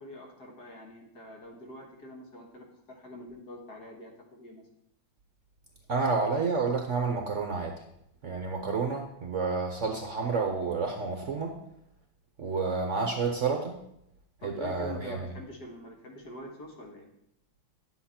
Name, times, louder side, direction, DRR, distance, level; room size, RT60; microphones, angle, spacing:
voice 1, 0.0-4.6 14.4-17.1, left 1 dB, 55° left, 0 dB, 2.1 m, -45 dB
voice 2, 5.9-7.8 8.2-11.6 12.4-13.8 14.4-15.3, right 4 dB, 50° right, 3 dB, 1.0 m, -30 dB
10.0 x 7.7 x 4.3 m, 0.78 s
omnidirectional pair, 2.1 m